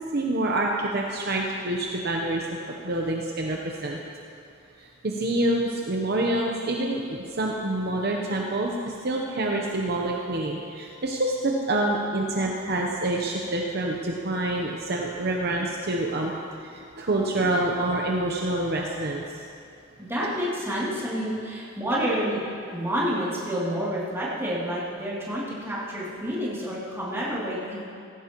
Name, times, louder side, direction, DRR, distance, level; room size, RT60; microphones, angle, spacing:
voice 1, 0.0-2.5 2.8-4.0 4.8-16.3 16.6-19.4, right 1 dB, 50° right, -1 dB, 0.9 m, -27 dB
voice 2, 20.0-22.4 22.7-27.8, equal, 10° right, -8 dB, 2.8 m, -29 dB
16.5 x 15.0 x 3.0 m, 2.5 s
head